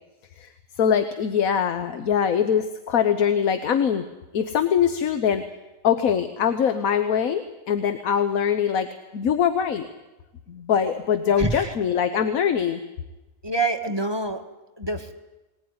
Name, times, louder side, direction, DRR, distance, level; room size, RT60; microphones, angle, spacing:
voice 1, 0.8-4.0 4.3-5.4 5.8-8.9 9.1-9.9 10.5-12.8, left 8 dB, 80° left, 9 dB, 1.5 m, -22 dB
voice 2, 11.4-11.7 13.4-14.4 14.8-15.1, right 3 dB, 20° right, 5 dB, 1.5 m, -26 dB
20.5 x 19.0 x 9.6 m, 1.1 s
omnidirectional pair, 1.5 m